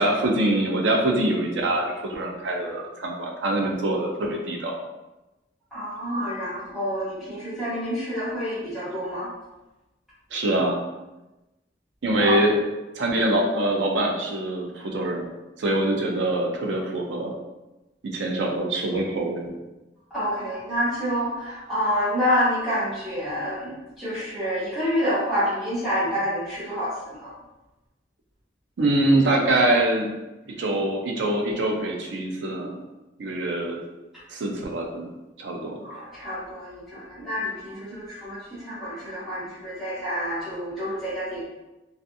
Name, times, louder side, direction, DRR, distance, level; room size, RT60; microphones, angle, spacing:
voice 1, 0.0-4.7 10.3-10.8 12.0-12.6 13.0-15.2 15.6-17.3 18.0-19.5 28.8-30.1 30.5-32.8 33.2-33.8 34.3-35.1 35.4-35.8, right 1 dB, 80° right, 1 dB, 0.5 m, -24 dB
voice 2, 5.7-9.3 12.2-12.4 20.1-27.3 35.8-41.4, equal, ahead, -12 dB, 1.1 m, -28 dB
2.5 x 2.4 x 2.6 m, 1.0 s
head